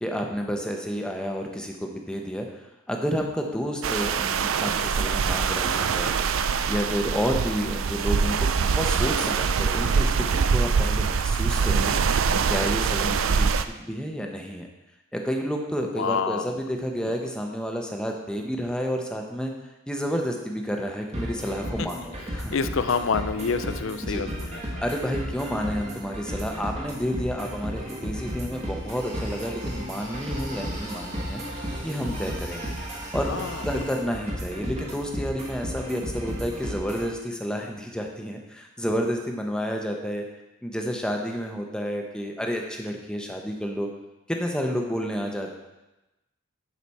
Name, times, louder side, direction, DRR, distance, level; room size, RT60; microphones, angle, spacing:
voice 1, 0.0-6.2 6.7-11.9 12.5-14.7 15.1-19.5 19.9-22.5 24.1-24.2 24.8-31.4 31.8-32.7 33.1-40.3 40.6-43.9 44.3-45.5, equal, 5° left, 1 dB, 0.7 m, -30 dB
sound 1, 3.8-13.6, right 5 dB, 75° right, 0.4 m, -24 dB
voice 2, 12.5-12.9 16.0-16.5 17.0-17.1 21.8-21.9 22.3-24.8 33.3-33.8, left 5 dB, 70° left, 11 dB, 0.5 m, -29 dB
sound 2, 21.1-37.1, equal, 30° right, 1.4 m, -34 dB
sound 3, 28.7-34.0, right 1 dB, 55° right, 3.2 m, -41 dB
11.5 x 5.0 x 4.2 m, 1.0 s
head